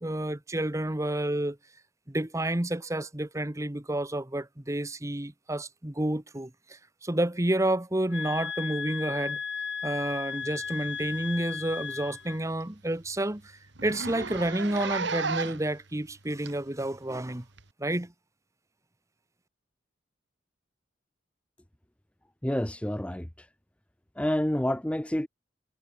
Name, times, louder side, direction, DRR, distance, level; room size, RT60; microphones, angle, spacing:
voice 1, 0.0-1.6 2.1-9.4 9.8-17.4 17.8-18.1, right 1 dB, 15° right, 1.0 m, -30 dB
sound 1, 8.1-12.4, left 6 dB, 70° left, 5.4 m, -35 dB
Zipper (clothing), 11.1-11.3 11.7-11.8 12.1-12.2 12.6-12.7 12.9-13.1 13.7-15.7 16.5-16.6 17.6-17.7, right 4 dB, 65° right, 1.8 m, -33 dB
voice 2, 22.4-23.5 24.2-25.3, left 1 dB, 5° left, 0.6 m, -28 dB
head